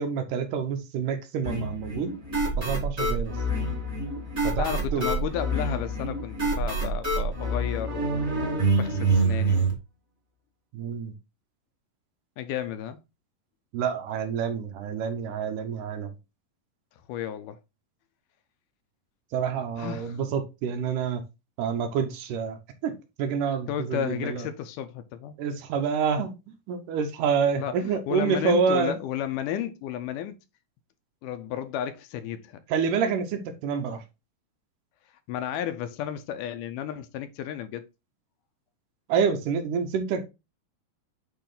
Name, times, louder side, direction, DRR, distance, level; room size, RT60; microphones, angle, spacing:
voice 1, 0.0-2.1 2.6-3.3 4.4-5.1 10.7-11.1 13.7-16.1 19.3-21.2 21.6-24.5 25.4-26.3 26.7-29.0 32.7-34.0 39.1-40.2, right 6 dB, 75° right, 2.3 m, -28 dB
sound 1, 1.5-9.7, right 2 dB, 25° right, 1.8 m, -26 dB
voice 2, 4.6-8.3 8.7-9.8 12.4-13.0 17.1-17.6 19.8-20.2 23.7-25.4 27.6-30.4 31.2-32.6 35.3-37.8, left 10 dB, 80° left, 2.1 m, -33 dB
8.6 x 3.0 x 3.8 m
omnidirectional pair, 3.9 m